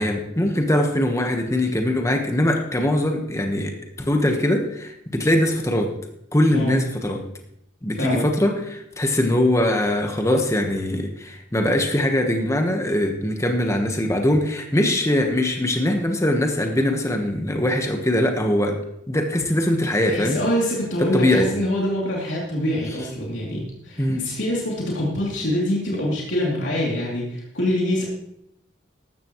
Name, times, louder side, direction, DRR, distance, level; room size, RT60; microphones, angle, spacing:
voice 1, 0.0-3.7 4.0-5.9 6.3-7.2 7.8-18.8 19.1-20.4 21.1-21.5 24.0-24.2, left 1 dB, 15° left, 3 dB, 1.3 m, -21 dB
voice 2, 7.9-8.3 20.1-28.1, left 1 dB, 75° left, -4 dB, 3.0 m, -25 dB
14.5 x 12.0 x 3.1 m, 0.78 s
head